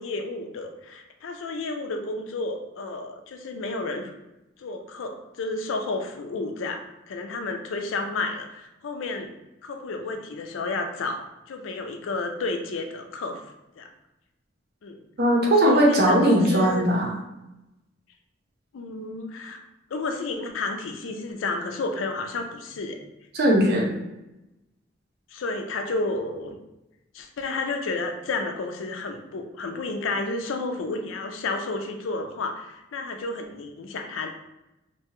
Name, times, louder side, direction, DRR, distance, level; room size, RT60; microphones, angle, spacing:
voice 1, 0.0-4.1 4.6-6.8 7.1-9.3 9.6-13.4 13.8-13.9 14.8-15.0 15.6-16.8 18.7-19.6 19.9-23.0 25.3-26.6 27.1-34.3, left 3 dB, 85° left, 5 dB, 0.4 m, -31 dB
voice 2, 15.2-17.1 23.3-24.0, right 1 dB, 55° right, -1 dB, 0.6 m, -19 dB
2.7 x 2.2 x 2.9 m, 0.94 s
head